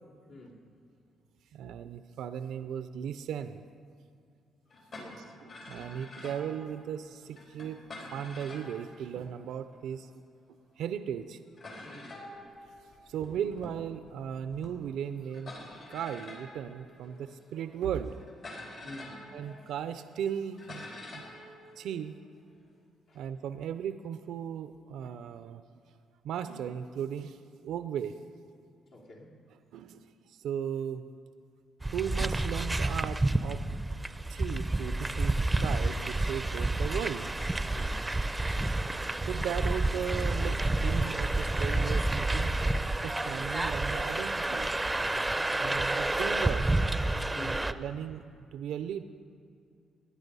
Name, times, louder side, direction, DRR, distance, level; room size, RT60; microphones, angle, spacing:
voice 1, 0.3-0.6 5.0-5.4 11.8-12.2 18.8-19.3 23.1-23.2 28.9-29.4 37.6-38.5 47.2-47.7, left 1 dB, 70° left, -3 dB, 2.7 m, -48 dB
voice 2, 1.5-3.6 5.0-5.1 5.4-10.1 10.5-11.4 13.1-15.5 15.9-18.2 19.3-20.9 21.1-21.2 21.8-22.2 23.1-25.8 26.2-28.1 29.7-31.0 31.9-33.6 34.3-37.3 39.3-42.6 43.0-44.7 45.6-46.7 47.4-49.0, right 9 dB, 80° right, 11 dB, 0.4 m, -37 dB
sound 1, 4.7-10.0 10.7-10.8 11.0-11.2 11.6-22.7, left 1 dB, 55° left, 4.4 m, -48 dB
sound 2, 31.8-47.7, right 2 dB, 10° right, 0.5 m, -29 dB
16.5 x 10.5 x 5.4 m, 2.4 s
cardioid pair, 90°, 0 cm